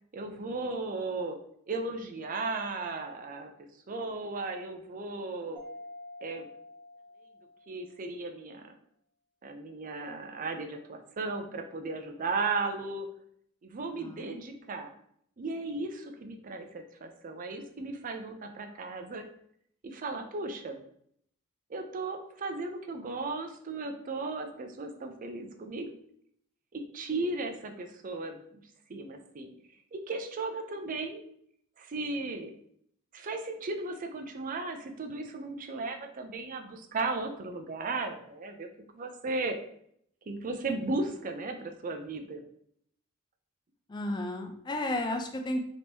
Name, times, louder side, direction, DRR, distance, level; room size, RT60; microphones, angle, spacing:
voice 1, 0.1-1.4 1.7-3.5 3.9-5.6 6.2-6.5 7.7-8.7 9.4-13.1 13.6-14.9 15.4-19.2 19.8-20.8 21.7-25.9 26.7-28.6 28.9-29.5 29.9-31.2 31.8-32.5 33.1-38.7 38.9-39.6 40.3-42.4, right 3 dB, 40° right, 5 dB, 0.4 m, -35 dB
Mallet percussion, 5.6-8.1, left 1 dB, 20° right, 1.0 m, -48 dB
voice 2, 13.9-14.3 43.9-45.6, left 1 dB, 20° left, 4 dB, 0.4 m, -33 dB
3.6 x 2.9 x 2.7 m, 0.67 s
head